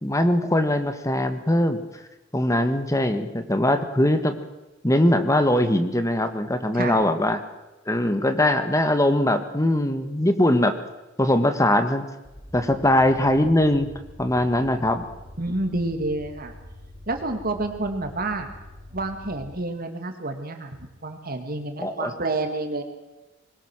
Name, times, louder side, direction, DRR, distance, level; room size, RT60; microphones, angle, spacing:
voice 1, 0.0-1.8 2.3-4.4 4.8-7.4 7.9-10.8 11.2-12.0 12.5-13.9 14.2-15.0 21.8-22.1, left 1 dB, 15° left, 9 dB, 1.5 m, -21 dB
sound 1, 12.2-19.6, left 1 dB, 10° right, 3.8 m, -45 dB
voice 2, 15.4-16.5 17.1-18.5 18.9-22.8, right 2 dB, 45° right, 6 dB, 2.6 m, -29 dB
21.5 x 19.5 x 6.5 m, 1.1 s
head